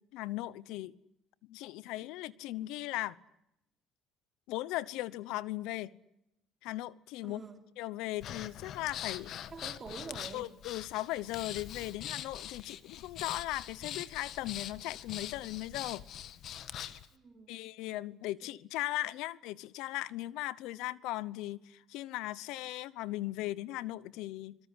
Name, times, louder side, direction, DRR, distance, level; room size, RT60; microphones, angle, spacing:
voice 1, 0.1-0.9 1.5-3.2 4.5-5.9 6.6-7.4 7.8-9.3 10.3-16.0 17.5-24.6, left 17 dB, 80° left, 0.9 m, -38 dB
voice 2, 7.2-7.6 9.5-10.5 17.1-17.6 18.4-18.5, right 4 dB, 30° right, 3.7 m, -46 dB
Breathing, 8.2-17.1, left 10 dB, 60° left, 1.5 m, -43 dB
27.0 x 21.5 x 9.8 m
cardioid pair, 110°, 0 cm